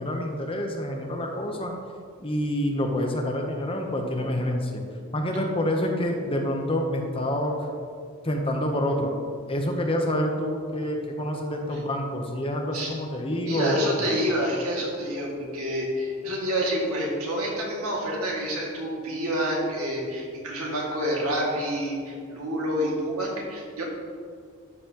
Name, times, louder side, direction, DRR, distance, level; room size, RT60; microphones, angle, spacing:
voice 1, 0.0-1.7 2.2-4.8 5.1-7.7 8.2-9.1 9.5-14.1, left 1 dB, 25° left, 2 dB, 0.8 m, -27 dB
voice 2, 13.5-23.8, equal, 80° right, -3 dB, 2.0 m, -28 dB
12.0 x 5.6 x 2.9 m, 2.2 s
head